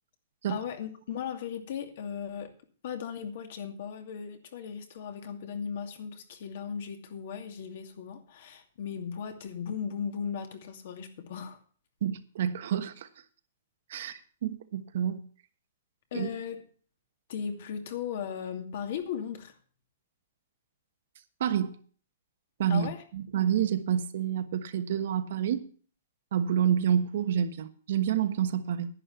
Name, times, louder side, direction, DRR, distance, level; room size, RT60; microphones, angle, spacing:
voice 1, 0.5-2.5 2.8-11.6 16.1-16.6 17.3-19.5 22.7-23.0, left 7 dB, 55° left, 2.5 m, -37 dB
voice 2, 12.0-13.1 13.9-15.2 16.1-16.3 21.4-21.8 22.6-25.7 26.3-28.9, right 9 dB, 60° right, 1.3 m, -28 dB
11.0 x 10.0 x 5.8 m
hypercardioid pair, 155°, 0 cm